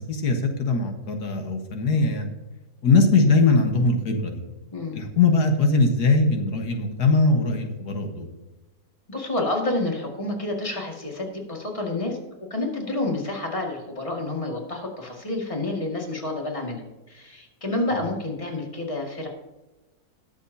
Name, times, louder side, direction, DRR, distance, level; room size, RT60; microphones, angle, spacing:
voice 1, 0.0-2.3 2.8-4.4 4.9-8.3, left 3 dB, 85° left, 4 dB, 1.9 m, -21 dB
voice 2, 9.1-12.2 12.5-16.8 17.1-19.3, left 2 dB, 20° left, 0 dB, 2.1 m, -29 dB
19.5 x 7.2 x 2.8 m, 1.1 s
omnidirectional pair, 1.7 m